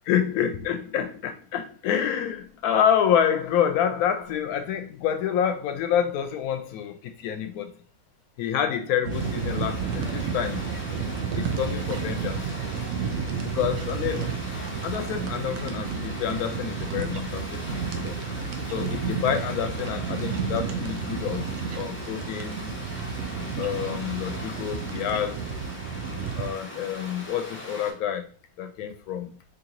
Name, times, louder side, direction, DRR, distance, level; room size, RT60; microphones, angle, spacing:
voice 1, 0.1-7.7 8.4-10.6 11.4-12.5 13.4-14.4 14.8-18.1 18.7-22.7 23.6-25.4 26.4-28.3 28.6-29.4, left 9 dB, 85° left, 7 dB, 1.1 m, -28 dB
sound 1, 9.0-26.5, right 6 dB, 70° right, 0.9 m, -31 dB
sound 2, 9.1-27.9, left 1 dB, 10° left, 0.6 m, -40 dB
3.0 x 2.9 x 3.7 m, 0.42 s
omnidirectional pair, 1.5 m